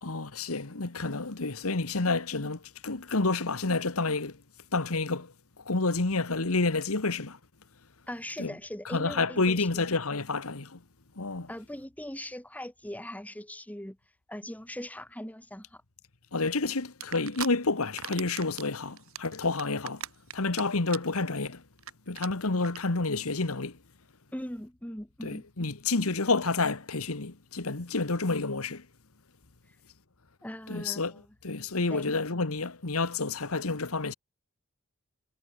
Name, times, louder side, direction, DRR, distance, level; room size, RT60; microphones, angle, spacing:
voice 1, 0.0-4.4 4.7-7.4 8.4-8.5 8.8-10.8 11.2-11.5 16.3-20.1 20.3-21.6 22.1-23.8 25.2-28.8 30.7-31.1 31.4-34.1, left 3 dB, 80° left, 1.6 m, -29 dB
voice 2, 8.1-9.9 11.5-14.0 14.3-15.8 24.3-25.5 30.4-31.2 31.9-32.1, left 1 dB, 5° left, 2.9 m, -40 dB
sound 1, 17.0-17.5 17.8-18.7 19.0-20.6 20.9-21.2 21.5-21.6 21.8-21.9 22.2-22.3 22.6-22.8, right 9 dB, 75° right, 5.3 m, -38 dB
head